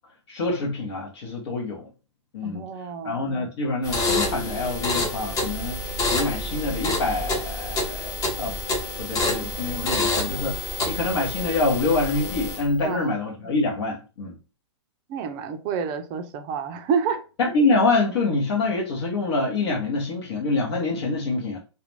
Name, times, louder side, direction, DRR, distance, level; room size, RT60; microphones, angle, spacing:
voice 1, 0.3-1.9 2.3-2.6 3.0-5.8 6.1-8.5 9.0-14.3 17.4-21.6, left 3 dB, 60° left, 0.8 m, -26 dB
voice 2, 2.4-3.1 12.8-13.1 15.1-17.2, right 6 dB, 30° right, 0.4 m, -28 dB
sound 1, 3.8-12.8, left 2 dB, 20° left, 0.7 m, -28 dB
2.4 x 2.2 x 3.0 m
hypercardioid pair, 130°, 15 cm